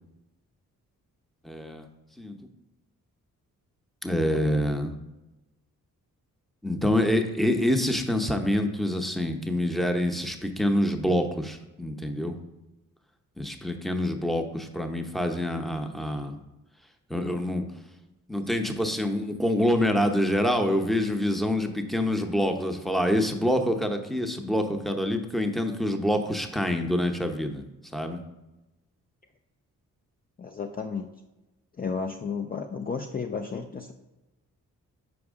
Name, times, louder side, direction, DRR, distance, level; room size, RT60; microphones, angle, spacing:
voice 1, 1.4-1.9 2.2-2.3 4.0-4.9 6.6-12.4 13.4-16.4 17.1-17.7 18.3-27.6 27.9-28.2, left 1 dB, ahead, 5 dB, 0.7 m, -26 dB
voice 2, 30.4-31.1 31.8-33.9, left 5 dB, 25° left, 3 dB, 0.4 m, -32 dB
6.1 x 4.7 x 3.6 m, 1.0 s
supercardioid pair, 55°, 35 cm